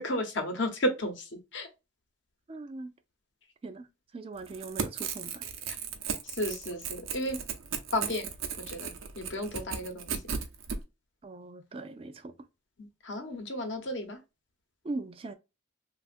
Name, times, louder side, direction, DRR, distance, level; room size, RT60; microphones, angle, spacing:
voice 1, 0.0-1.7 6.2-7.4 7.9-8.3 8.7-10.2 12.8-14.2, left 1 dB, 65° left, 0.9 m, -33 dB
voice 2, 2.5-2.9 3.6-3.9 4.1-5.4 11.2-12.3 14.8-15.4, right 3 dB, 30° right, 0.3 m, -40 dB
Crackle / Tearing, 4.4-10.8, right 6 dB, 85° right, 0.6 m, -36 dB
3.3 x 2.4 x 2.4 m
head